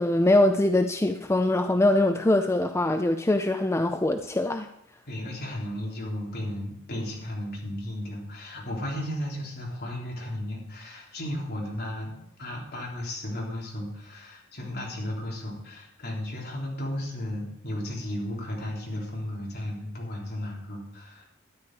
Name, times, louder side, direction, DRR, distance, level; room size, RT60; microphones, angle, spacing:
voice 1, 0.0-4.7, left 1 dB, 15° left, 7 dB, 0.4 m, -23 dB
voice 2, 5.1-21.2, left 1 dB, 50° left, -2 dB, 3.6 m, -34 dB
12.5 x 10.0 x 4.7 m, 0.82 s
head